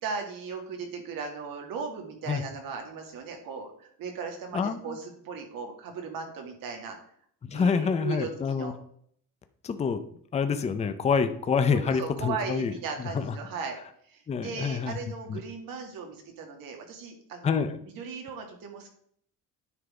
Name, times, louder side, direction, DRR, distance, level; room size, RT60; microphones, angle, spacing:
voice 1, 0.0-7.0 7.5-8.8 11.7-13.8 14.0-18.9, right 5 dB, 80° right, 3 dB, 2.1 m, -37 dB
voice 2, 4.5-5.0 7.4-8.7 9.6-10.0 10.3-12.7 14.3-15.0 15.3-15.4 17.4-17.7, left 6 dB, 20° left, 9 dB, 0.5 m, -27 dB
9.6 x 4.0 x 4.8 m, 0.65 s
cardioid pair, 165°, 33 cm